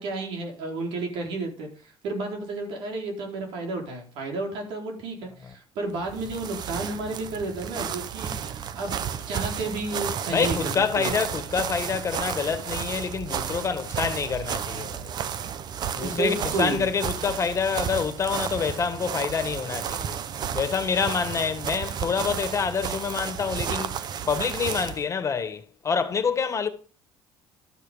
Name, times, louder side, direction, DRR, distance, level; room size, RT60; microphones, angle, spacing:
voice 1, 0.0-8.9 9.3-11.1 16.0-16.9, right 2 dB, 75° right, 4.3 m, -32 dB
sound 1, 6.0-25.0, right 8 dB, 55° right, 1.0 m, -32 dB
voice 2, 10.3-15.1 15.9-20.2 20.5-26.7, left 6 dB, 35° left, 1.8 m, -27 dB
12.5 x 8.1 x 5.2 m
supercardioid pair, 90°, 9 cm